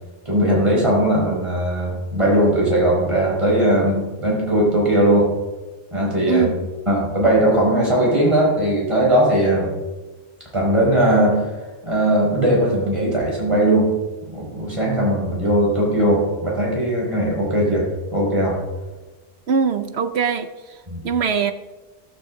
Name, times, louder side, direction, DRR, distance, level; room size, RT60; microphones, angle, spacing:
voice 1, 0.2-5.3 5.9-6.5 6.9-9.7 10.5-11.4 11.8-13.9 14.2-18.6 20.9-21.0, right 1 dB, 25° right, -3 dB, 5.0 m, -19 dB
voice 2, 19.5-20.5 21.0-21.5, right 6 dB, 60° right, 10 dB, 1.0 m, -21 dB
14.5 x 13.0 x 3.7 m, 1.2 s
omnidirectional pair, 1.3 m